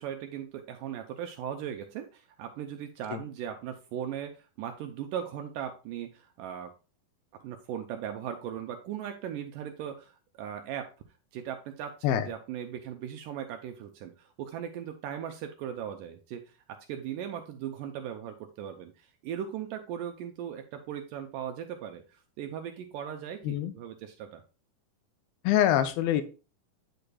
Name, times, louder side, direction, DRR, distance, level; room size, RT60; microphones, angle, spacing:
voice 1, 0.0-6.7 7.4-10.9 11.3-24.4, right 9 dB, 80° right, 5 dB, 1.9 m, -38 dB
voice 2, 25.4-26.2, left 11 dB, 85° left, 10 dB, 2.5 m, -25 dB
8.8 x 6.7 x 2.3 m, 0.33 s
omnidirectional pair, 4.3 m